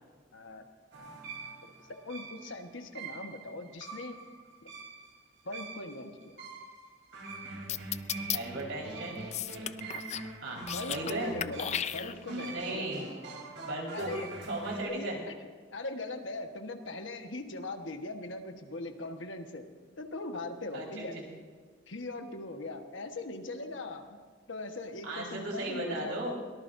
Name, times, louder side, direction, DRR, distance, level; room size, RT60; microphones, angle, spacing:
voice 1, 0.3-0.6 1.9-4.2 4.6-4.7 5.4-6.4 10.7-12.9 13.9-14.3 14.9-15.3 15.7-19.7 20.0-21.1 21.9-24.1 24.5-26.4, left 2 dB, 75° left, 5 dB, 1.3 m, -40 dB
sound 1, 0.9-14.8, right 3 dB, 65° right, 3.5 m, -43 dB
sound 2, 7.7-8.4 9.3-10.3 10.6-11.1 11.4-12.4, left 10 dB, 35° left, 0.4 m, -34 dB
voice 2, 8.3-9.2 10.4-11.3 12.5-13.1 13.6-14.1 14.4-15.2 20.7-21.2 25.0-26.4, right 2 dB, 90° right, -3 dB, 4.8 m, -36 dB
23.0 x 18.0 x 2.7 m, 1.6 s
head